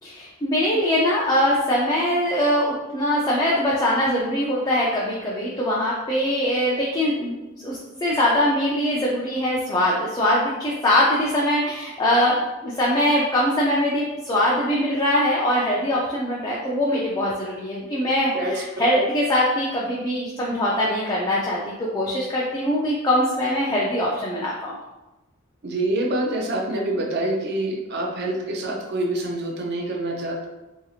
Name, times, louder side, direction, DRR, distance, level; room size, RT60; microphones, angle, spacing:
voice 1, 0.0-7.3 7.6-12.4 12.6-24.7, left 1 dB, 20° left, -5 dB, 0.3 m, -22 dB
voice 2, 18.2-18.5 18.9-19.0 25.6-30.5, right 1 dB, 50° right, 0 dB, 0.5 m, -26 dB
2.7 x 2.6 x 2.4 m, 1.0 s
head